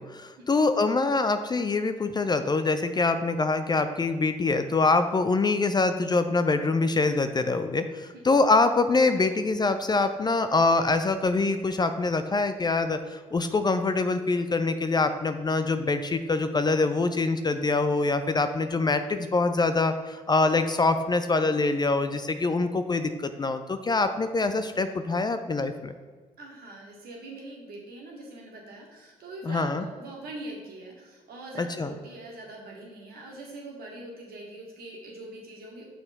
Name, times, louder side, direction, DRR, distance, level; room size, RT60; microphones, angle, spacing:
voice 1, 0.1-25.9 29.5-29.8 31.6-31.9, left 3 dB, 25° left, 9 dB, 0.5 m, -24 dB
voice 2, 26.4-35.9, right 2 dB, 60° right, -1 dB, 1.7 m, -42 dB
6.8 x 4.2 x 4.1 m, 1.4 s
figure-of-eight pair, 45°, 18 cm